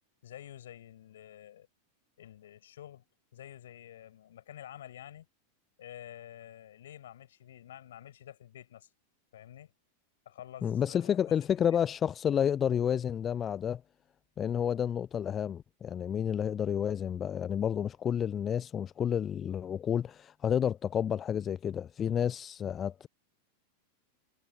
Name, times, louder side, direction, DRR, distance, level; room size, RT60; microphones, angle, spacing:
voice 1, 0.2-1.7 2.2-3.0 3.3-5.3 5.8-8.9 9.3-9.7 10.3-11.6, left 11 dB, 60° left, 7.2 m, -49 dB
voice 2, 10.6-13.8 14.4-23.1, left 8 dB, 25° left, 0.4 m, -30 dB
figure-of-eight pair, 90°, 0 cm